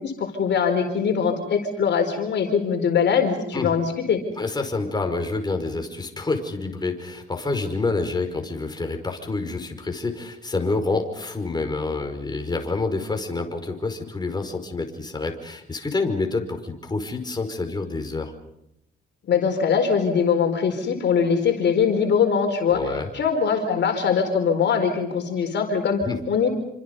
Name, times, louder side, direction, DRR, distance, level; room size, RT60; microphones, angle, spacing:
voice 1, 0.0-4.2 19.3-22.8 23.1-26.0 26.3-26.5, left 6 dB, 60° left, 5 dB, 4.5 m, -22 dB
voice 2, 4.4-18.3 22.7-23.1 26.1-26.2, left 3 dB, 20° left, 4 dB, 5.3 m, -27 dB
28.0 x 26.0 x 5.5 m, 0.80 s
cardioid pair, 90°, 20 cm